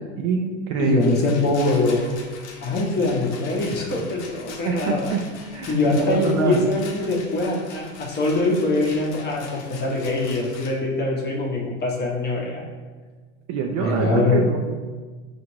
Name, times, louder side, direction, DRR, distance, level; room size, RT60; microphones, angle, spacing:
voice 1, 0.2-1.2 4.6-5.2 5.5-6.6 13.5-14.6, right 6 dB, 45° right, 2 dB, 0.4 m, -25 dB
voice 2, 0.8-2.2 2.6-5.1 5.7-12.6 13.8-14.4, left 2 dB, 25° left, -2 dB, 0.8 m, -23 dB
Rattle, 1.0-10.7, left 4 dB, 65° left, 0.8 m, -42 dB
5.0 x 2.5 x 3.0 m, 1.4 s
hypercardioid pair, 110°, 38 cm